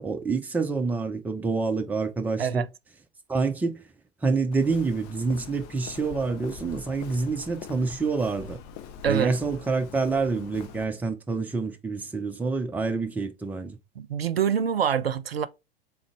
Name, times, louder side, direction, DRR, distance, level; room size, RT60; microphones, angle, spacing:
voice 1, 0.0-2.6 3.3-3.8 4.2-8.6 9.0-13.8, right 4 dB, 5° right, 0.5 m, -27 dB
Walk footsteps, 4.5-10.8, left 7 dB, 45° left, 0.9 m, -44 dB
voice 2, 14.0-15.5, right 8 dB, 85° right, 0.5 m, -25 dB
3.8 x 3.3 x 3.2 m
figure-of-eight pair, 90°, 29 cm